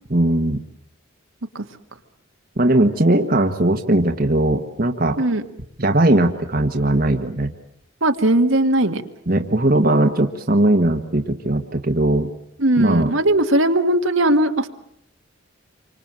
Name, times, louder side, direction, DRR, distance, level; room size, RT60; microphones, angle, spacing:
voice 1, 0.1-0.6 2.6-5.2 5.8-7.5 9.3-12.3 12.8-13.1, right 1 dB, 45° right, 5 dB, 1.5 m, -19 dB
voice 2, 8.0-9.0 12.6-14.7, right 1 dB, 70° right, 6 dB, 1.8 m, -18 dB
28.0 x 25.0 x 7.6 m, 0.71 s
head